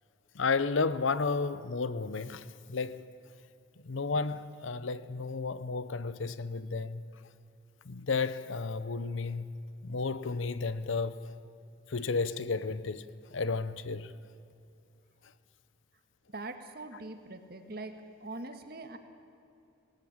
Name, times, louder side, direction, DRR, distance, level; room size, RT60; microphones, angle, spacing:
voice 1, 0.3-3.0 3.8-7.0 7.9-9.5 9.8-11.2 11.9-13.0 13.3-14.1, left 4 dB, 70° left, 0.7 m, -32 dB
voice 2, 16.3-17.9 18.2-19.0, right 2 dB, 50° right, 1.6 m, -42 dB
19.5 x 18.0 x 8.8 m
head